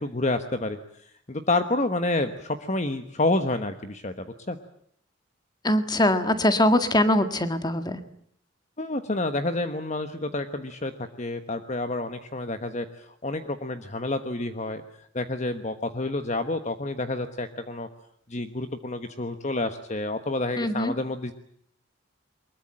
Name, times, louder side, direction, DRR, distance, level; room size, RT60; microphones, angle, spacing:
voice 1, 0.0-4.6 8.8-10.9 11.2-17.9 18.3-21.3, left 2 dB, 35° left, 9 dB, 1.2 m, -29 dB
voice 2, 5.6-8.0 20.6-20.9, left 1 dB, 20° left, 9 dB, 1.7 m, -22 dB
23.5 x 21.5 x 8.8 m, 0.65 s
head